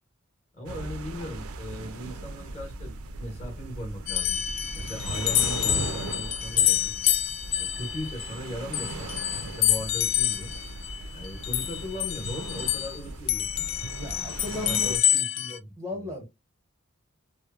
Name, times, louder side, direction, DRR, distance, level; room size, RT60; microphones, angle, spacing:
voice 1, 0.5-4.4 4.8-6.9 7.6-9.1 9.4-10.5 11.1-13.7 14.6-16.2, equal, 30° left, 1.0 m, -38 dB
sound 1, 0.7-15.0, right 3 dB, 75° right, 0.4 m, -38 dB
sound 2, 4.1-13.0 13.3-15.6, left 12 dB, 65° left, 0.3 m, -27 dB
voice 2, 13.9-15.0 15.8-16.2, left 2 dB, 15° right, 0.6 m, -35 dB
2.9 x 2.0 x 2.3 m
head